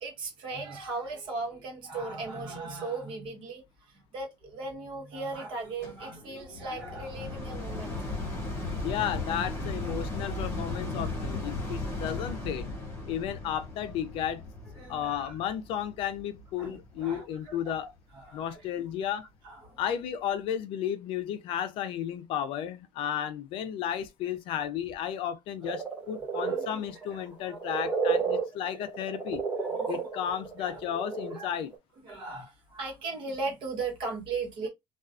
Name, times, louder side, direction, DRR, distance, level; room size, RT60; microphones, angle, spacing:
voice 1, 0.0-3.6 4.1-8.0 9.8-9.9 10.2-10.4 14.8-15.3 16.6-17.9 18.1-18.9 19.4-19.8 26.3-28.2 30.1-30.3 30.6-30.8 31.3-31.5 32.0-34.7, right 3 dB, 55° right, 1.2 m, -38 dB
sound 1, 5.8-17.1 17.7-17.8, left 2 dB, 25° left, 1.1 m, -36 dB
voice 2, 8.8-12.7 13.1-14.4 14.9-17.9 18.3-19.2 19.8-29.5 29.9-31.7, left 9 dB, 60° left, 0.4 m, -33 dB
sound 2, 25.6-31.4 31.7-31.8, right 5 dB, 15° right, 1.0 m, -31 dB
2.3 x 2.3 x 2.4 m
cardioid pair, 180°, 10 cm